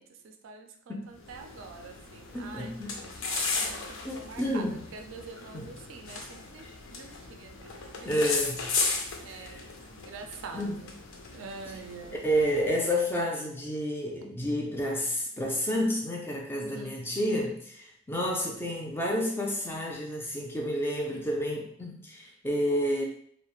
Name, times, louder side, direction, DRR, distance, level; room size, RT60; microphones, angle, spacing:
voice 1, 0.0-4.7 4.9-8.1 9.2-10.9 11.3-12.2 16.6-16.9, right 4 dB, 75° right, 5 dB, 0.3 m, -46 dB
sound 1, 1.2-12.9, left 4 dB, 75° left, 0.4 m, -36 dB
voice 2, 2.3-3.0 4.0-4.9 5.5-5.7 8.0-8.7 9.3-9.7 10.5-10.9 12.2-23.0, equal, 10° left, -1 dB, 0.3 m, -30 dB
2.3 x 2.0 x 3.0 m, 0.65 s
head